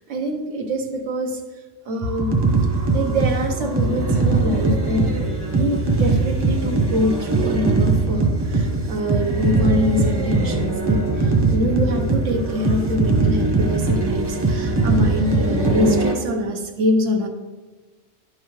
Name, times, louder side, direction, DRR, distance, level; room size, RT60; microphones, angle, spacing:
voice 1, 0.1-1.4 1.9-2.4 2.9-5.2 5.6-17.3, left 1 dB, 75° right, 3 dB, 1.2 m, -24 dB
sound 1, 2.0-16.1, right 3 dB, 25° right, 0.8 m, -20 dB
11.0 x 5.4 x 3.1 m, 1.3 s
omnidirectional pair, 1.3 m